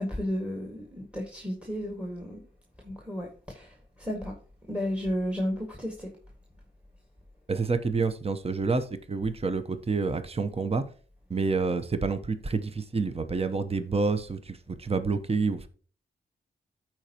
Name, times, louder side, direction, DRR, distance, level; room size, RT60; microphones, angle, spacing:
voice 1, 0.0-2.4 2.8-4.3 4.7-6.1, equal, 5° right, 2 dB, 1.8 m, -33 dB
voice 2, 7.5-10.8 11.3-15.7, right 4 dB, 30° right, 10 dB, 0.9 m, -28 dB
13.5 x 4.5 x 2.9 m, 0.41 s
cardioid pair, 60°, 19 cm